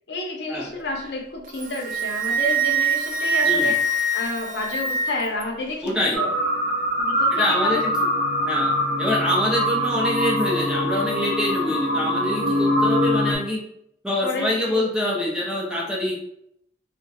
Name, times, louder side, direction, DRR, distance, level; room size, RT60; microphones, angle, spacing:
voice 1, 0.1-6.3 7.0-7.8 14.2-14.9, left 2 dB, 65° left, 1 dB, 0.6 m, -30 dB
Wind instrument woodwind instrument, 1.5-5.4, right 2 dB, 45° right, 0.3 m, -24 dB
voice 2, 5.8-6.2 7.3-7.9 8.5-8.7 9.0-13.6 14.0-16.2, left 1 dB, 5° right, -4 dB, 0.6 m, -25 dB
sound 1, 6.1-13.4, equal, 85° right, 1.0 m, -23 dB
2.4 x 2.2 x 4.0 m, 0.73 s
head